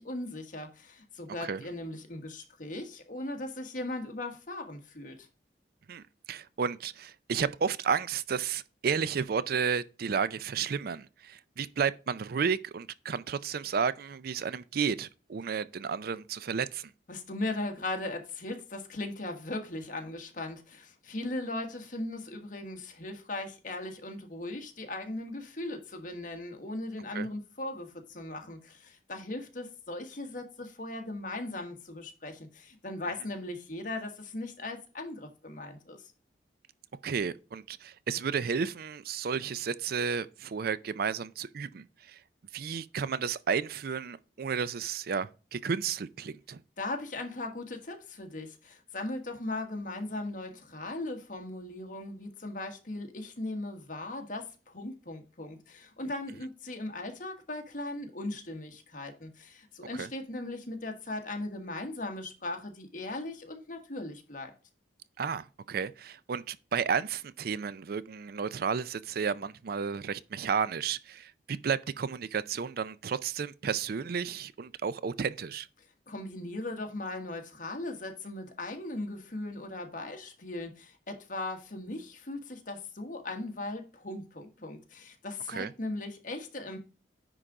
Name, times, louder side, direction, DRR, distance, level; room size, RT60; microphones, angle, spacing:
voice 1, 0.0-5.3 17.1-36.1 46.8-64.5 76.1-86.8, left 2 dB, 50° left, 1.5 m, -38 dB
voice 2, 5.9-16.9 27.1-27.3 37.0-42.2 42.5-46.6 59.9-60.1 65.2-75.7 85.5-85.7, right 6 dB, 55° right, 0.4 m, -32 dB
9.9 x 3.8 x 4.8 m
head